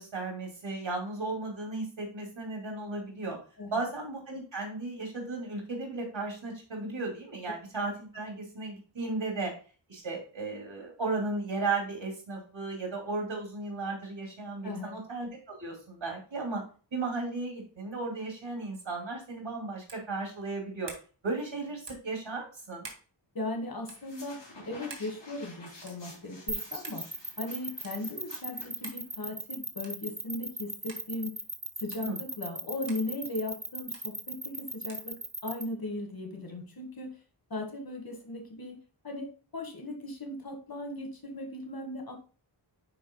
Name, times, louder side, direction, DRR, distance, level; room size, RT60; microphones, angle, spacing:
voice 1, 0.0-3.4 3.7-9.5 9.9-16.6 16.9-20.9 21.2-22.9 32.0-32.2, right 3 dB, 90° right, 0 dB, 2.7 m, -35 dB
voice 2, 14.6-15.0 23.3-27.1 27.4-31.3 31.8-37.2 37.5-38.8 39.0-42.2, left 2 dB, 50° left, 4 dB, 1.6 m, -37 dB
sound 1, 19.8-20.1 20.8-21.1 21.8-22.1 22.8-23.1 23.8-24.0 24.9-25.1 25.9-26.1 26.8-27.0 27.8-28.0 28.8-29.0 29.8-30.0 30.9-31.0 31.9-32.0 32.9-33.0 33.9-34.1 34.9-35.1, right 4 dB, 70° right, 1.5 m, -46 dB
sound 2, 23.9-29.3, left 2 dB, 70° left, 3.5 m, -50 dB
sound 3, 26.5-35.6, right 2 dB, 20° right, 1.1 m, -36 dB
9.7 x 4.6 x 2.2 m, 0.37 s
wide cardioid pair, 65°, 45 cm